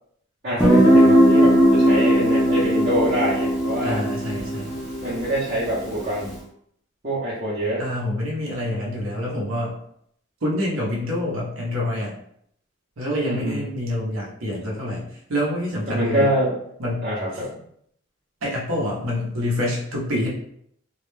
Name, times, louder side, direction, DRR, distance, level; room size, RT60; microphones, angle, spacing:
voice 1, 0.4-4.0 5.0-6.4 7.0-7.8 13.2-13.6 15.9-16.5 17.0-17.5, equal, 45° right, -10 dB, 0.7 m, -25 dB
Guitar, 0.6-6.2, equal, 5° right, 0.5 m, -18 dB
voice 2, 3.8-4.8 7.8-9.8 10.4-12.1 13.0-16.3 16.8-17.1 17.3-17.4 18.4-20.3, left 1 dB, 80° right, -3 dB, 0.7 m, -26 dB
2.3 x 2.1 x 3.1 m, 0.69 s
head